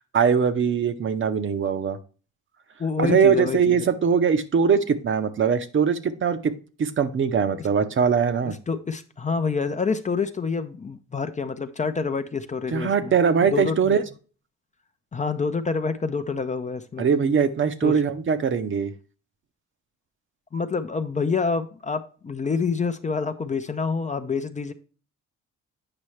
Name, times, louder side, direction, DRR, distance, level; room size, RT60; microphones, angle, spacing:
voice 1, 0.1-2.0 3.0-6.5 6.8-8.6 12.7-14.0 17.0-18.9, right 6 dB, 40° right, 0.7 m, -21 dB
voice 2, 2.8-3.9 8.4-13.2 13.4-14.0 15.1-17.1 17.8-18.0 20.5-24.7, left 5 dB, 25° left, 0.5 m, -27 dB
8.7 x 5.4 x 3.2 m
cardioid pair, 90°, 30 cm